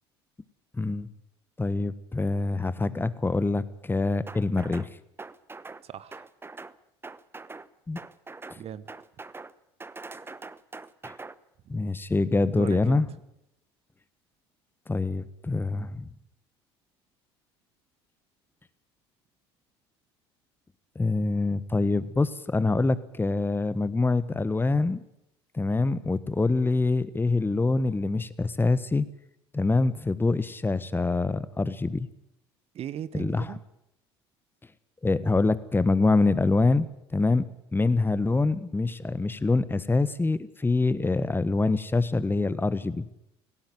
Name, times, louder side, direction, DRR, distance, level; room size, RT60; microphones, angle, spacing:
voice 1, 0.7-1.1 1.6-4.9 7.9-8.0 11.0-11.1 11.7-13.1 14.9-16.1 20.9-25.0 25.5-29.1 29.5-32.1 33.2-33.4 35.0-36.9 37.1-37.4 37.7-43.1, left 3 dB, 15° left, 16 dB, 1.4 m, -25 dB
sound 1, 4.3-4.9 5.2-5.8 6.1-6.7 7.0-7.7 7.9-8.6 8.9-9.5 9.8-11.3, right 3 dB, 15° right, 1.0 m, -42 dB
voice 2, 5.8-6.2 8.6-8.9 12.6-13.0 32.7-33.6, right 10 dB, 45° right, 17 dB, 1.1 m, -37 dB
17.5 x 17.5 x 9.7 m, 0.82 s
hypercardioid pair, 65°, 14 cm